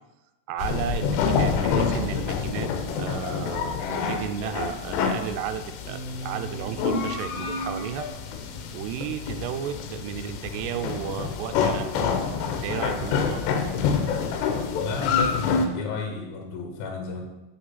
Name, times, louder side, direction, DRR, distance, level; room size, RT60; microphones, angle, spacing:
voice 1, 0.5-2.7 3.0-8.1 8.7-11.9 12.5-13.4, right 9 dB, 90° right, 9 dB, 2.7 m, -33 dB
sound 1, 0.6-15.7, left 5 dB, 90° left, 3.0 m, -27 dB
sound 2, 5.9-9.9, right 2 dB, 50° right, 2.2 m, -43 dB
voice 2, 14.7-17.3, left 4 dB, 70° left, 3 dB, 2.7 m, -32 dB
6.8 x 6.0 x 5.8 m, 1.0 s
omnidirectional pair, 4.7 m